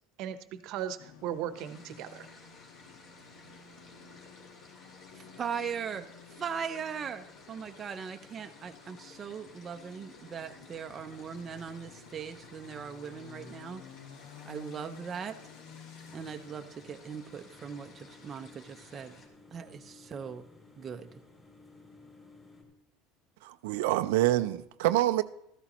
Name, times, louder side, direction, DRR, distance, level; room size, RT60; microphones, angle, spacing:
voice 1, 0.2-2.3, right 10 dB, 50° right, 0.9 m, -37 dB
sound 1, 1.0-18.4, left 6 dB, 85° left, 1.4 m, -53 dB
sound 2, 1.5-19.3, left 3 dB, 35° left, 2.5 m, -56 dB
voice 2, 5.1-13.8 14.5-15.4 16.1-19.1 19.5-20.4 20.8-21.1, right 7 dB, 20° right, 0.5 m, -39 dB
sound 3, 16.0-22.6, left 3 dB, 15° left, 3.0 m, -56 dB
voice 3, 23.4-25.2, right 15 dB, 90° right, 0.4 m, -26 dB
14.0 x 13.5 x 3.0 m
cardioid pair, 165°, 0 cm